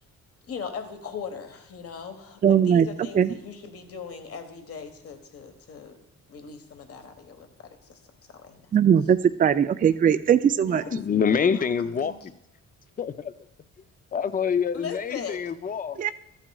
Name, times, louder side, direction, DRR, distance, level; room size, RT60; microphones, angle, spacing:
voice 1, 0.5-6.0 6.3-7.5 7.9-8.0 8.3-8.6 10.6-11.7 12.0-12.2 14.7-15.4, left 6 dB, 50° left, 7 dB, 1.3 m, -39 dB
voice 2, 2.4-2.9 3.1-3.3 8.7-10.8 16.0-16.1, right 8 dB, 30° right, 11 dB, 0.4 m, -20 dB
voice 3, 10.9-12.3 13.0-13.3 14.1-16.1, left 6 dB, 30° left, 13 dB, 0.5 m, -26 dB
13.5 x 8.9 x 2.3 m, 0.82 s
cardioid pair, 90°, 30 cm